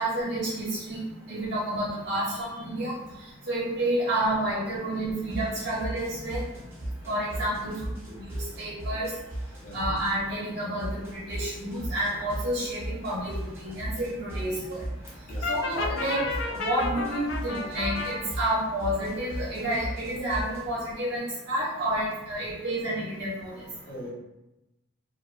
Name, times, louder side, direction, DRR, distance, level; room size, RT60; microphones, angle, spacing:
voice 1, 0.0-23.9, right 1 dB, 55° right, -7 dB, 0.6 m, -30 dB
voice 2, 2.0-2.6 7.6-7.9 9.6-9.8 10.6-10.7 13.7-13.8 14.3-14.7 15.2-15.5 17.2-17.7 23.5-24.1, equal, 45° left, -5 dB, 0.7 m, -46 dB
sound 1, 5.3-10.3 10.8-20.6, right 1 dB, 15° right, 0.6 m, -37 dB
Brass instrument, 15.4-18.1, left 4 dB, 65° left, 0.4 m, -31 dB
2.4 x 2.1 x 2.4 m, 0.96 s
head